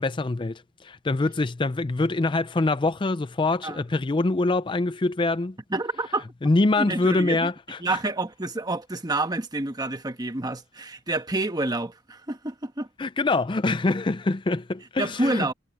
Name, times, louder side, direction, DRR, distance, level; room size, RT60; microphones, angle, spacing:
voice 1, 0.0-5.6 6.4-8.0 13.0-15.5, left 2 dB, 25° left, 0.5 m, -24 dB
voice 2, 5.7-6.2 6.8-7.5 7.8-12.9 15.0-15.5, right 2 dB, 20° right, 1.4 m, -28 dB
head